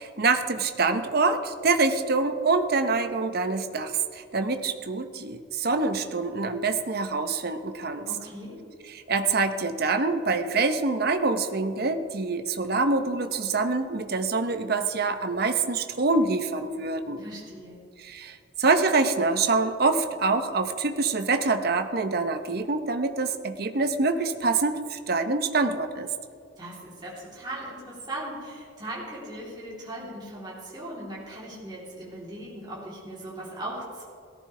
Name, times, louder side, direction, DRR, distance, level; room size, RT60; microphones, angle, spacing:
voice 1, 0.0-8.1 8.9-17.2 18.0-26.1, right 3 dB, 55° right, 8 dB, 0.8 m, -25 dB
voice 2, 8.1-8.6 17.2-17.8 26.6-34.0, right 1 dB, 25° right, -7 dB, 3.3 m, -38 dB
18.0 x 14.0 x 3.3 m, 2.3 s
head